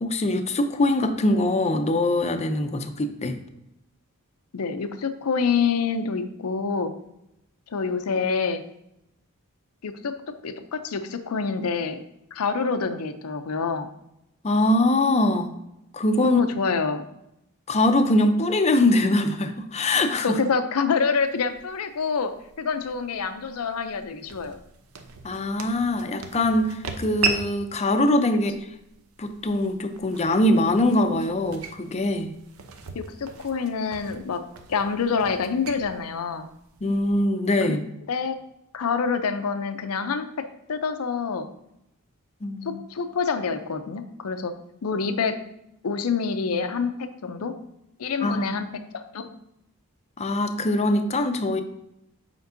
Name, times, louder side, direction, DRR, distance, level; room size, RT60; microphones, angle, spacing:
voice 1, 0.0-3.4 14.4-15.5 15.9-16.4 17.7-20.4 25.2-28.5 29.2-32.3 36.8-37.8 42.4-42.8 48.2-48.5 50.2-51.6, left 1 dB, 30° left, 8 dB, 0.5 m, -22 dB
voice 2, 4.5-6.9 7.7-8.6 9.8-10.1 10.4-12.0 12.3-13.9 16.2-17.1 20.2-24.6 32.9-34.4 34.7-36.5 37.7-37.8 38.1-38.4 38.7-40.3 40.7-41.5 42.6-44.5 44.8-45.4 45.8-47.5 48.0-48.7 48.9-49.3, left 5 dB, 85° left, 9 dB, 0.5 m, -26 dB
sound 1, 21.1-37.2, right 4 dB, 75° right, 0.6 m, -38 dB
7.9 x 5.2 x 2.6 m, 0.83 s
head